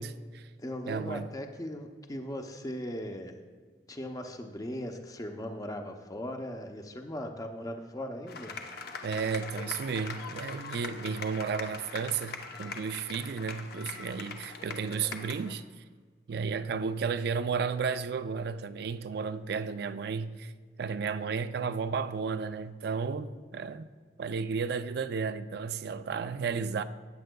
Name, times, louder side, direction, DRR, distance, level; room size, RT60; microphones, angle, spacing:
voice 1, 0.0-0.5 0.9-1.3 9.0-15.6 16.3-20.5 20.8-23.9 24.2-26.8, right 5 dB, 60° right, 0.4 m, -33 dB
voice 2, 0.6-3.4 3.9-8.6, equal, 20° left, 0.6 m, -38 dB
sound 1, 8.3-15.5, left 4 dB, 60° left, 0.8 m, -42 dB
14.0 x 8.9 x 2.2 m
head